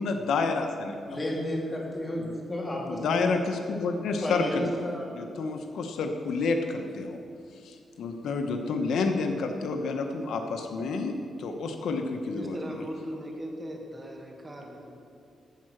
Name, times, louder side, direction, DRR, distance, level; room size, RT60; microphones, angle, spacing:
voice 1, 0.0-1.3 2.2-2.4 2.9-7.2 7.6-12.6, left 4 dB, 85° left, 5 dB, 0.9 m, -30 dB
voice 2, 1.1-3.3 4.2-5.1, left 1 dB, 25° left, -2 dB, 2.4 m, -32 dB
voice 3, 12.3-14.9, equal, 25° right, 1 dB, 1.6 m, -39 dB
14.0 x 4.8 x 7.9 m, 2.3 s
cardioid pair, 110°, 0 cm